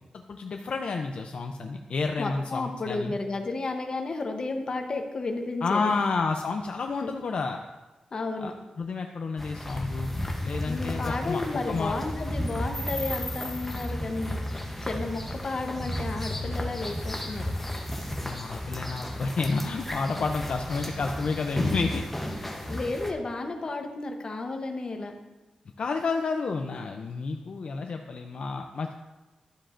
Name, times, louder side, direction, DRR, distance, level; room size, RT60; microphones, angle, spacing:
voice 1, 0.1-3.1 5.6-7.6 8.4-8.5 8.8-10.1 10.4-11.4 11.7-12.0 18.2-22.0 25.8-28.9, left 4 dB, 55° left, 4 dB, 0.4 m, -30 dB
voice 2, 2.2-5.9 7.0-7.1 8.1-8.5 10.7-17.5 22.7-25.1, left 3 dB, 40° left, 4 dB, 0.8 m, -32 dB
sound 1, 9.4-23.1, left 1 dB, 5° left, 0.8 m, -33 dB
12.0 x 7.5 x 2.5 m, 1.2 s
wide cardioid pair, 165°, 2 cm